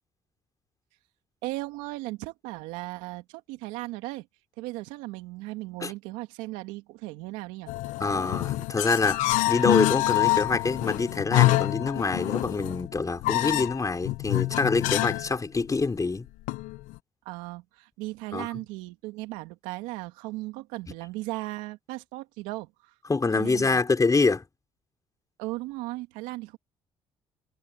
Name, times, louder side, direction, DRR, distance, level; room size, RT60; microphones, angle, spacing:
voice 1, 1.4-4.3 4.6-7.7 17.2-22.9 23.3-23.8 25.4-26.6, right 20 dB, 85° right, 2.5 m, -37 dB
sound 1, 7.7-15.3 15.6-15.7 16.5-17.0, left 20 dB, 80° left, 0.8 m, -26 dB
voice 2, 8.0-16.3 18.3-18.5 23.1-24.4, left 3 dB, 25° left, 4.8 m, -26 dB
supercardioid pair, 65°, 13 cm